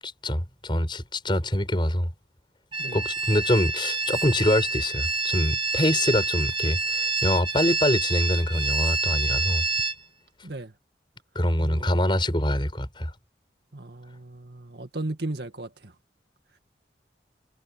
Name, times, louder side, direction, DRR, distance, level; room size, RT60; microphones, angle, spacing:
voice 1, 0.0-2.1 2.9-9.6 11.4-13.1, left 1 dB, 25° left, 7.0 m, -25 dB
sound 1, 2.7-9.9, right 3 dB, 25° right, 1.6 m, -27 dB
voice 2, 11.6-11.9 13.7-15.7, right 2 dB, 65° right, 2.0 m, -35 dB
head